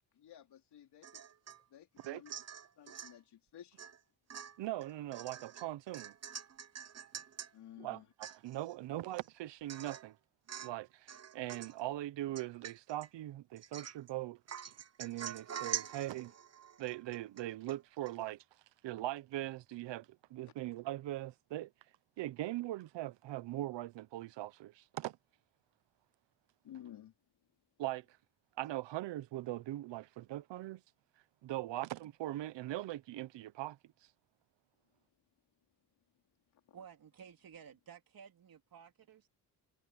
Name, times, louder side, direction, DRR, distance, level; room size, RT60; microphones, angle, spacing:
voice 1, 0.1-1.2 1.7-2.3 2.8-3.8 7.5-8.1 26.6-27.1 36.5-36.6, left 10 dB, 70° left, 2.9 m, -54 dB
Domestic sounds home sounds / Chink clink / Drip, 1.0-1.6 2.0-3.2 3.8-4.0 4.3-7.5 7.9-8.0 8.2-8.7 9.2-9.3 9.7-10.1 10.5-10.8 11.1-11.8 12.3-13.1 13.6-14.1 14.5-17.8 18.1-18.2, right 8 dB, 35° right, 1.1 m, -45 dB
voice 2, 4.6-6.1 7.8-10.2 10.6-14.4 15.0-16.3 16.8-18.4 18.8-21.7 22.2-25.2 27.8-28.2 28.6-30.8 31.4-33.8, right 15 dB, 90° right, 0.9 m, -41 dB
voice 3, 36.7-39.3, right 7 dB, 55° right, 3.8 m, -54 dB
cardioid pair, 135°, 42 cm